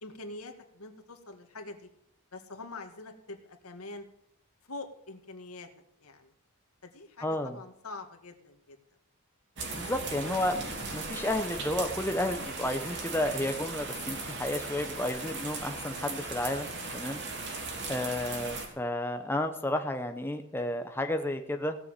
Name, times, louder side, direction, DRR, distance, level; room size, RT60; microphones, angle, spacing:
voice 1, 0.0-1.9 2.3-4.1 4.7-5.7 6.0-6.3 6.8-8.8 10.2-10.5, left 2 dB, 80° left, 5 dB, 2.1 m, -45 dB
voice 2, 7.2-7.6 9.7-17.2 17.9-21.8, left 1 dB, 10° left, 6 dB, 0.8 m, -32 dB
sound 1, 9.6-18.7, right 3 dB, 55° right, 3.2 m, -38 dB
17.0 x 7.0 x 9.0 m, 0.73 s
head